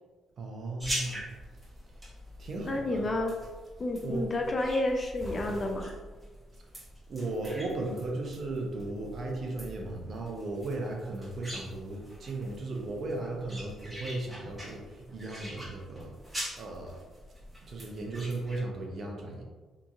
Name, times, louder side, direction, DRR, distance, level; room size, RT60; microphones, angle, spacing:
voice 1, 0.4-1.2 2.4-3.1 4.0-4.3 7.1-17.0 17.7-19.4, right 2 dB, 55° right, 0 dB, 0.6 m, -36 dB
sound 1, 0.8-18.6, equal, 10° right, 1.0 m, -43 dB
voice 2, 2.7-3.4 3.8-5.9, left 1 dB, 35° left, 2 dB, 0.4 m, -30 dB
2.9 x 2.5 x 2.4 m, 1.3 s
cardioid pair, 90°, 0 cm